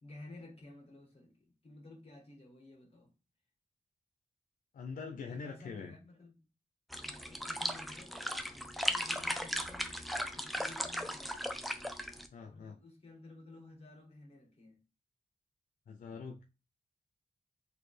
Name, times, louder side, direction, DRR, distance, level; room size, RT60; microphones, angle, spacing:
voice 1, 0.0-3.1 5.3-6.4 7.0-8.2 8.5-11.9 12.4-14.8, left 2 dB, 45° left, 1.9 m, -54 dB
voice 2, 4.7-5.9 12.3-12.8 15.9-16.4, left 5 dB, 85° left, 0.5 m, -43 dB
sound 1, 6.9-12.3, equal, ahead, 0.6 m, -37 dB
4.0 x 2.8 x 3.2 m
cardioid pair, 60°, 14 cm